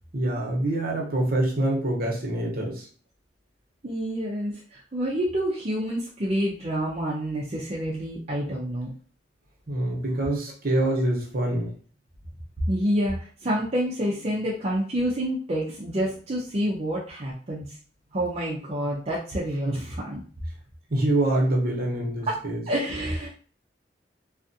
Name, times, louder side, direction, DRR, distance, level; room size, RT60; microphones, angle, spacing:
voice 1, 0.1-2.9 9.7-11.7 19.6-19.8 20.9-22.6, right 1 dB, 55° right, -1 dB, 0.9 m, -25 dB
voice 2, 3.8-8.9 12.7-17.8 18.1-20.2 22.3-22.4 22.7-23.3, equal, 35° right, -5 dB, 0.5 m, -28 dB
2.4 x 2.4 x 2.6 m, 0.42 s
head